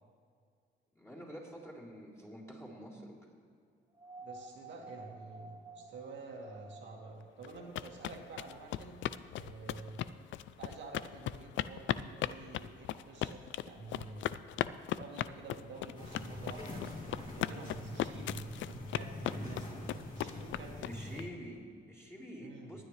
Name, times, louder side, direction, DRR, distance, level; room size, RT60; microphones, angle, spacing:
voice 1, 0.9-3.2 20.8-22.8, equal, 15° left, -5 dB, 3.8 m, -47 dB
sound 1, 3.9-7.2 8.6-8.7, right 2 dB, 20° right, 2.4 m, -51 dB
voice 2, 4.2-9.0 9.4-10.0 10.6-14.3 15.0-16.8 17.4-18.4 18.9-19.8 20.2-21.2 22.4-22.8, right 3 dB, 70° right, -1 dB, 2.0 m, -49 dB
sound 2, 7.4-21.2, left 12 dB, 70° left, 0.4 m, -37 dB
sound 3, 16.0-21.2, left 1 dB, 40° left, 2.9 m, -44 dB
19.5 x 10.0 x 3.3 m, 2.2 s
cardioid pair, 90°, 20 cm